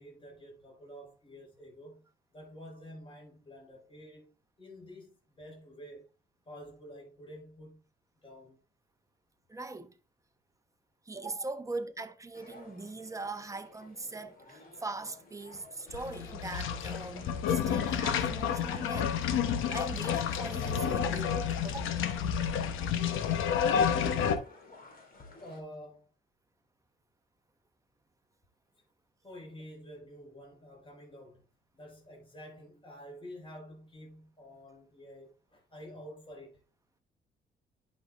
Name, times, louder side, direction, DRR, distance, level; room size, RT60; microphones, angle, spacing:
voice 1, 0.0-2.1 2.3-4.3 4.6-6.1 6.4-7.9 8.1-8.6 25.4-26.1 29.2-31.5 31.7-36.6, equal, 25° left, 4.8 m, -49 dB
voice 2, 9.5-10.0 11.0-19.1 19.7-21.8 23.0-23.2, right 3 dB, 15° right, 0.9 m, -41 dB
sound 1, 12.3-25.6, left 3 dB, 45° left, 2.6 m, -54 dB
sound 2, 15.9-24.4, left 8 dB, 90° left, 0.9 m, -30 dB
10.5 x 5.6 x 2.4 m
cardioid pair, 90°, 20 cm